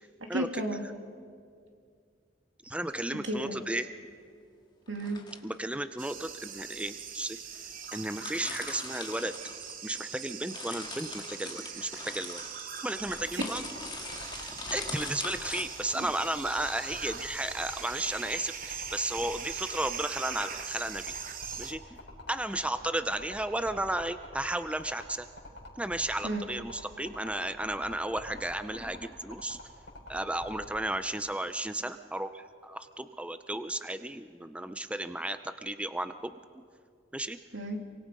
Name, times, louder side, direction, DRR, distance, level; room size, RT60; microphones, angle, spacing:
voice 1, 0.3-0.9 3.1-3.6 4.9-5.2 13.3-13.4 15.9-16.1 26.2-26.5 37.5-37.8, right 1 dB, 90° right, 3 dB, 2.7 m, -33 dB
voice 2, 2.6-3.9 5.4-7.4 7.9-9.3 9.8-12.4 12.8-13.6 14.7-21.2 21.6-22.0 22.3-25.3 25.8-29.6 30.1-36.4 37.1-37.4, right 1 dB, 5° right, 10 dB, 0.6 m, -34 dB
sound 1, 2.8-3.0 4.9-5.5 6.4-6.5 7.2-7.3 7.5-7.6 7.8-10.1 10.4-15.6, left 4 dB, 25° left, 2.0 m, -42 dB
sound 2, 6.0-21.7, right 7 dB, 50° right, 1.2 m, -41 dB
sound 3, 13.0-30.7, left 2 dB, 70° left, 5.5 m, -46 dB
28.0 x 24.0 x 5.4 m, 2.2 s
head